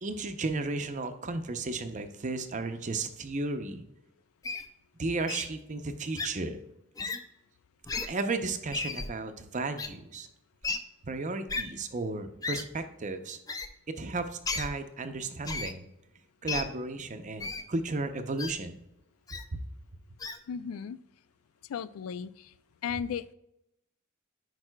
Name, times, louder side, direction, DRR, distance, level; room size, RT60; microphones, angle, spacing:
voice 1, 0.0-3.8 5.0-6.6 8.1-10.3 11.0-13.4 13.9-15.9 16.4-18.8 19.5-19.6, right 3 dB, 35° right, 8 dB, 0.6 m, -34 dB
Wild animals, 4.4-4.6 5.3-5.5 6.1-6.3 7.0-7.2 7.8-8.1 8.7-9.1 9.8-9.9 10.6-10.8 11.5-11.6 12.4-12.6 13.5-13.7 14.4-14.7 15.4-15.7 16.5-16.6 17.4-17.6 18.4-18.5 19.3-19.4 20.2-20.4, left 4 dB, 15° left, 0.4 m, -33 dB
voice 2, 20.5-21.0 21.7-22.5 22.8-23.3, left 7 dB, 85° left, 17 dB, 0.3 m, -35 dB
11.0 x 4.7 x 2.2 m, 0.82 s
head